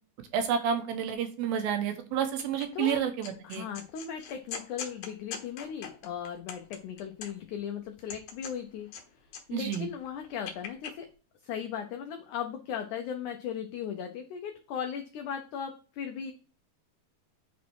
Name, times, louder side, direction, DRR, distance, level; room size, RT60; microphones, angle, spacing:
voice 1, 0.3-3.7 9.5-9.9, right 8 dB, 75° right, 6 dB, 2.6 m, -30 dB
sound 1, 2.4-2.9 3.2-7.6 8.0-9.4 9.7-10.9, left 7 dB, 65° left, 2.2 m, -42 dB
voice 2, 3.4-8.9 9.5-11.1 11.4-16.3, left 8 dB, 90° left, 4 dB, 1.7 m, -37 dB
8.2 x 4.2 x 4.6 m, 0.38 s
omnidirectional pair, 4.4 m